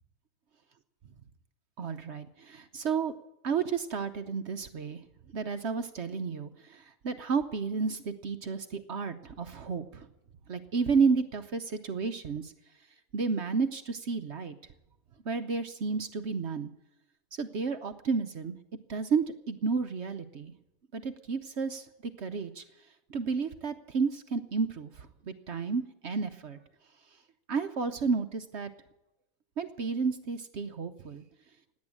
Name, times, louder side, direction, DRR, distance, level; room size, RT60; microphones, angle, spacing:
voice 1, 1.8-3.1 3.4-5.0 5.3-10.1 10.5-12.5 13.1-14.6 15.3-16.7 17.3-18.6 18.9-20.5 20.9-22.6 23.1-26.6 27.5-28.7 29.6-31.2, right 5 dB, 50° right, 8 dB, 0.9 m, -31 dB
17.0 x 9.7 x 8.6 m, 0.93 s
omnidirectional pair, 1.8 m